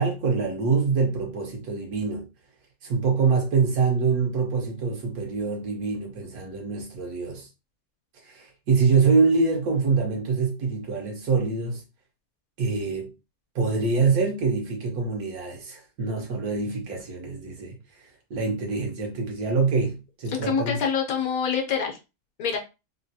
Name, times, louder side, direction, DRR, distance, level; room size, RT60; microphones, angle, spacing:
voice 1, 0.0-2.3 2.8-7.5 8.2-11.8 12.6-13.1 13.5-17.7 18.3-20.8, right 4 dB, 90° right, 1.5 m, -25 dB
voice 2, 20.3-22.0 22.4-22.6, left 6 dB, 75° left, 1.2 m, -26 dB
3.7 x 2.2 x 2.7 m
omnidirectional pair, 1.5 m